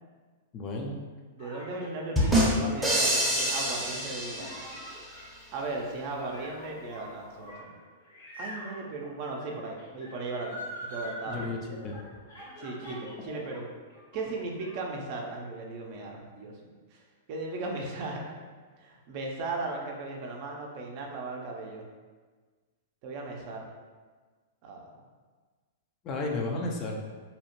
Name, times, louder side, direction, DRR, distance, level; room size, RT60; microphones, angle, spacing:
voice 1, 0.5-1.0 11.3-12.0 26.0-27.0, left 2 dB, 35° left, 1 dB, 0.4 m, -33 dB
voice 2, 1.3-4.6 5.5-7.7 8.4-11.5 12.6-13.7 14.1-16.6 16.9-17.0 17.3-18.3 18.8-21.9 23.0-23.7 24.6-24.8, right 3 dB, 50° right, 0 dB, 0.5 m, -37 dB
sound 1, 1.4-13.6 13.9-14.7, equal, 85° left, 1.1 m, -45 dB
sound 2, 2.2-5.0, equal, 5° right, 0.6 m, -26 dB
2.7 x 2.0 x 2.9 m, 1.4 s
hypercardioid pair, 125°, 0 cm